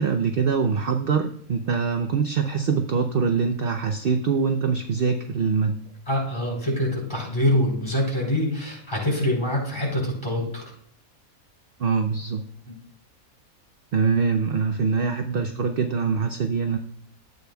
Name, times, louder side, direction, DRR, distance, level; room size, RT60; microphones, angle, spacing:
voice 1, 0.0-5.8 11.8-12.5 13.9-16.8, right 5 dB, 55° right, 5 dB, 0.7 m, -24 dB
voice 2, 6.1-10.6, left 1 dB, 20° left, -3 dB, 4.2 m, -25 dB
13.0 x 8.4 x 2.3 m, 0.64 s
omnidirectional pair, 1.5 m